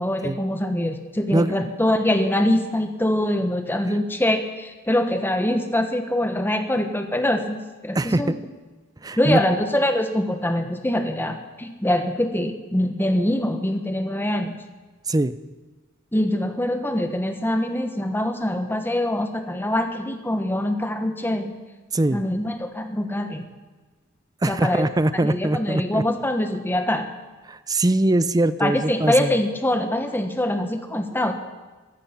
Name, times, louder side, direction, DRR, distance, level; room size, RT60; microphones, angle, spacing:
voice 1, 0.0-8.4 9.2-14.6 16.1-21.5 22.1-23.5 24.5-27.1 28.6-31.3, left 1 dB, 10° left, 6 dB, 1.2 m, -24 dB
voice 2, 9.0-9.4 15.1-15.4 21.9-22.2 24.4-26.0 27.5-29.3, right 1 dB, 15° right, 14 dB, 0.5 m, -22 dB
14.5 x 14.0 x 6.0 m, 1.3 s
head